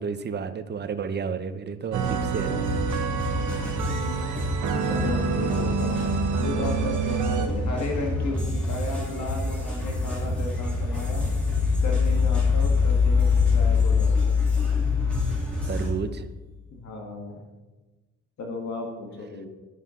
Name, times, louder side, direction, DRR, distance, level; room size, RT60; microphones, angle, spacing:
voice 1, 0.0-2.5 15.7-16.2, right 6 dB, 35° right, 10 dB, 0.7 m, -31 dB
voice 2, 1.9-2.7 3.9-4.3 4.9-6.1 6.4-11.3 11.8-14.3 16.7-17.4 18.4-19.5, left 2 dB, 70° left, 2 dB, 1.5 m, -34 dB
sound 1, 1.9-7.5, right 5 dB, 75° right, 1.0 m, -27 dB
sound 2, 2.0-15.9, equal, 5° left, 2.9 m, -30 dB
sound 3, 8.8-16.3, left 6 dB, 85° left, 2.6 m, -24 dB
11.0 x 5.5 x 3.7 m, 1.2 s
cardioid pair, 90°, 30 cm